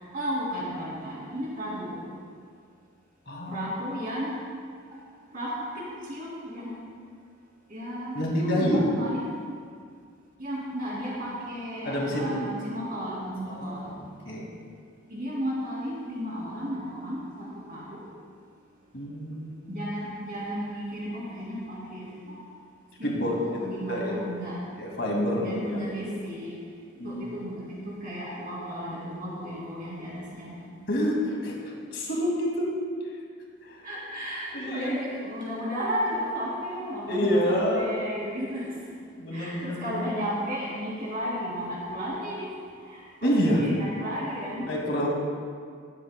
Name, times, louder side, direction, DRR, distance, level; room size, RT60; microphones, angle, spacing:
voice 1, 0.0-2.1 3.5-4.3 5.3-6.7 7.7-9.3 10.4-13.8 15.1-18.0 19.7-22.4 23.0-24.6 25.4-26.5 27.0-30.5 33.8-38.7 39.3-42.6 42.9-44.8, equal, 40° right, -5 dB, 2.6 m, -34 dB
voice 2, 3.3-3.7 8.1-9.0 11.8-12.5 13.5-14.5 18.9-19.8 23.0-23.3 23.6-24.1 24.8-25.8 27.0-27.5 30.9-32.7 33.6-33.9 34.5-35.0 37.1-37.9 39.2-40.0 43.2-43.8 44.6-45.1, equal, 55° left, -2 dB, 2.2 m, -28 dB
20.0 x 9.1 x 2.2 m, 2.1 s
head